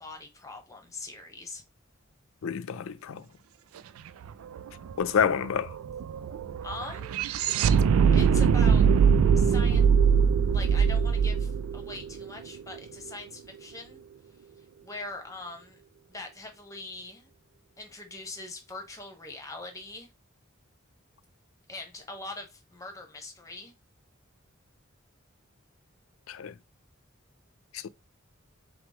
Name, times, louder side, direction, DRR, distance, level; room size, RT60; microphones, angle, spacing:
voice 1, 0.0-1.6 6.6-7.2 8.1-8.9 9.4-9.9 10.5-14.0 14.8-15.8 16.1-17.3 17.8-20.1 21.7-23.7, left 2 dB, 15° left, 1.0 m, -42 dB
voice 2, 2.4-3.2 5.0-5.7 26.3-26.5, left 7 dB, 85° left, 0.4 m, -28 dB
sound 1, 4.2-4.3 4.6-12.8, right 6 dB, 90° right, 0.3 m, -22 dB
5.8 x 2.0 x 3.5 m
head